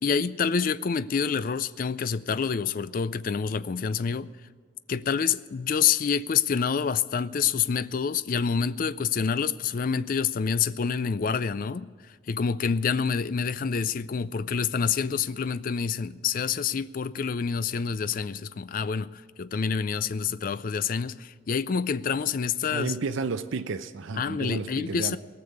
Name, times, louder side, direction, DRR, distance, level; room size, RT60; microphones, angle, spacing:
voice 1, 0.0-4.3 4.9-22.9 24.2-25.2, left 6 dB, 45° left, 0.3 m, -27 dB
voice 2, 22.7-25.2, right 4 dB, 75° right, 0.5 m, -32 dB
18.0 x 6.9 x 9.6 m
head